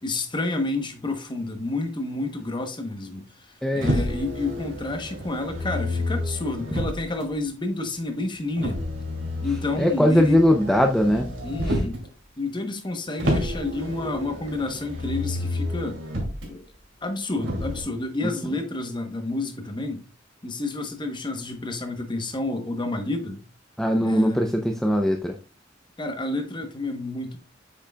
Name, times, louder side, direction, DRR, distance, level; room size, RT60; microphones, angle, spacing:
voice 1, 0.0-3.2 3.7-8.8 9.4-10.4 11.4-12.0 12.4-16.0 16.5-16.6 17.0-20.0 20.4-23.4 24.0-24.5 26.0-27.4, left 2 dB, 25° left, 0.9 m, -29 dB
voice 2, 3.6-3.9 9.8-11.3 11.7-11.8 23.8-25.4, equal, 5° left, 0.4 m, -20 dB
Motor vehicle (road), 3.8-7.3 8.6-12.1 13.2-16.5 17.4-17.8, left 1 dB, 85° right, 2.5 m, -29 dB
8.2 x 5.9 x 2.3 m
head